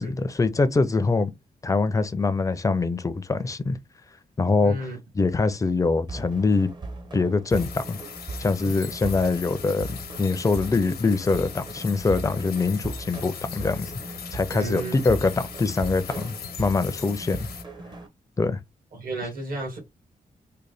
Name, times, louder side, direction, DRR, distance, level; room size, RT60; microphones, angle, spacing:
voice 1, 0.0-1.3 1.6-3.8 4.4-4.9 5.1-6.7 7.1-8.0 8.4-13.9 14.3-17.5 18.4-18.6, left 3 dB, 20° left, 0.4 m, -24 dB
voice 2, 4.6-5.0 14.5-15.1 18.9-19.8, right 2 dB, 65° right, 1.8 m, -33 dB
sound 1, 6.1-18.1, right 2 dB, 30° right, 0.7 m, -38 dB
sound 2, 7.5-17.6, left 8 dB, 85° left, 0.7 m, -40 dB
3.8 x 2.2 x 3.3 m
wide cardioid pair, 120°, 16 cm